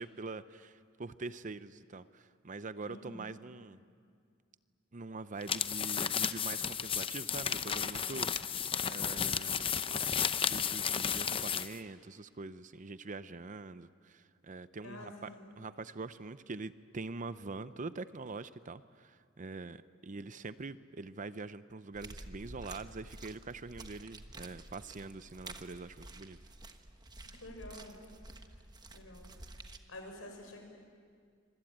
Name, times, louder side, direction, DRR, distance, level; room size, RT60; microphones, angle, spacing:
voice 1, 0.0-3.8 4.9-9.7 10.4-26.4, right 3 dB, 40° right, 14 dB, 0.6 m, -44 dB
voice 2, 2.8-3.3 14.8-15.4 27.3-28.0 28.9-29.2 29.9-30.6, left 1 dB, 70° left, 3 dB, 6.1 m, -48 dB
sound 1, 5.4-11.8, left 7 dB, 25° left, 0.6 m, -33 dB
sound 2, 21.9-29.8, right 2 dB, 20° right, 1.2 m, -50 dB
25.5 x 24.5 x 8.8 m, 2.1 s
head